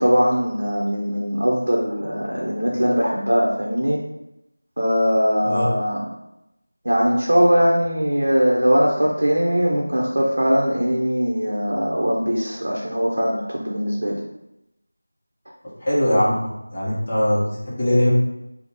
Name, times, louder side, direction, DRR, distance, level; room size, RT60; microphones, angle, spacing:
voice 1, 0.0-4.0 4.8-6.0 6.8-14.2, equal, 60° right, -4 dB, 0.6 m, -20 dB
voice 2, 15.8-16.3 16.7-18.1, left 1 dB, 20° left, -7 dB, 0.6 m, -20 dB
3.4 x 2.0 x 2.9 m, 0.88 s
figure-of-eight pair, 175°, 0 cm